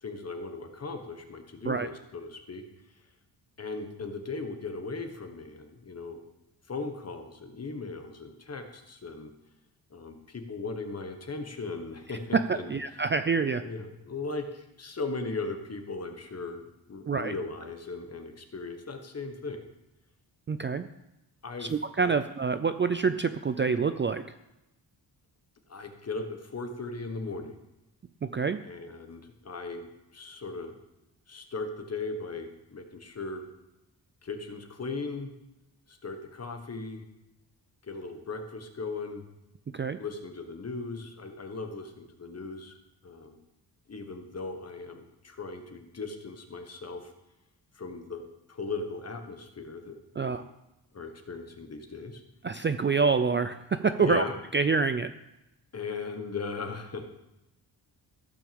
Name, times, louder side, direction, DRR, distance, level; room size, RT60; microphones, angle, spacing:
voice 1, 0.0-2.6 3.6-6.2 6.7-9.3 9.9-12.7 13.6-19.7 21.4-21.8 22.0-22.2 25.7-27.5 28.6-29.9 30.1-30.8 31.3-33.5 34.2-35.3 35.9-37.0 37.8-39.2 40.0-42.8 43.0-43.4 43.9-47.1 47.7-48.2 48.5-50.5 50.9-52.2 54.0-54.3 55.7-57.0, left 3 dB, 35° left, 6 dB, 1.4 m, -38 dB
voice 2, 12.7-13.6 17.1-17.3 20.5-20.9 21.6-24.2 28.2-28.6 39.7-40.0 50.2-50.4 52.4-54.2 54.5-55.1, right 5 dB, 30° right, 10 dB, 0.4 m, -27 dB
14.5 x 6.1 x 7.0 m, 0.92 s
wide cardioid pair, 160°, 42 cm